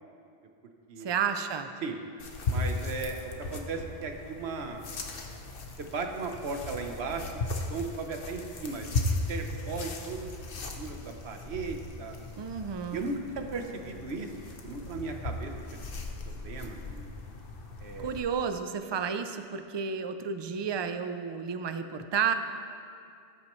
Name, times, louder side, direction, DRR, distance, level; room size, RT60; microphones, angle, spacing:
voice 1, 1.0-1.7 12.4-13.1 18.0-22.3, right 6 dB, 40° right, 8 dB, 0.4 m, -31 dB
sound 1, 2.2-18.2, left 2 dB, 60° left, 1.1 m, -37 dB
voice 2, 2.5-4.8 5.8-7.4 7.7-10.3 10.8-12.2 12.9-14.3 14.6-15.5 16.3-17.1 17.8-18.2, right 4 dB, 90° right, 4 dB, 1.2 m, -36 dB
17.5 x 8.5 x 3.1 m, 2.4 s
omnidirectional pair, 1.1 m